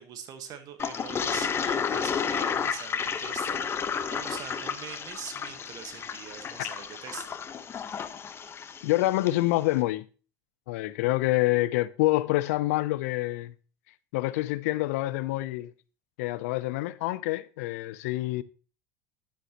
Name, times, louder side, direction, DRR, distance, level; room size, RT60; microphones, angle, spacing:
voice 1, 0.0-7.3, right 8 dB, 50° right, 1.3 m, -43 dB
Toilet flush, 0.8-9.4, left 7 dB, 30° left, 1.0 m, -32 dB
voice 2, 8.8-10.1 10.7-13.5 14.1-15.7 16.2-18.4, left 18 dB, 80° left, 0.6 m, -27 dB
10.5 x 7.9 x 2.9 m
supercardioid pair, 95°, 8 cm